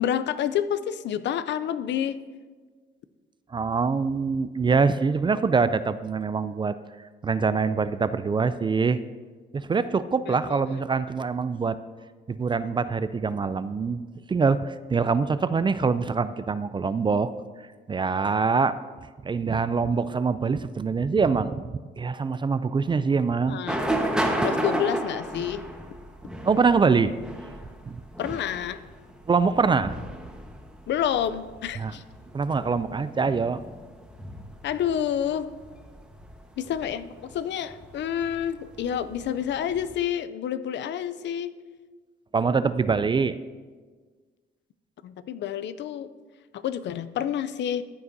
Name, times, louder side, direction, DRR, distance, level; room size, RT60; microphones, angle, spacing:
voice 1, 0.0-2.2 10.3-10.6 23.4-23.8 24.4-25.6 28.2-28.8 30.9-32.0 34.6-35.5 36.6-41.5 45.0-46.1 46.5-47.8, left 9 dB, 65° left, 14 dB, 0.5 m, -29 dB
voice 2, 3.5-6.7 7.2-9.0 9.5-11.8 12.3-14.0 14.3-17.3 17.9-18.8 19.2-23.6 26.4-27.1 27.9-28.0 29.3-30.0 31.8-31.9 32.3-33.6 42.3-43.4, right 5 dB, 25° right, 14 dB, 0.3 m, -24 dB
sound 1, 23.7-39.9, right 1 dB, 5° right, 1.2 m, -34 dB
13.5 x 8.4 x 2.7 m, 1.5 s
cardioid pair, 90°, 20 cm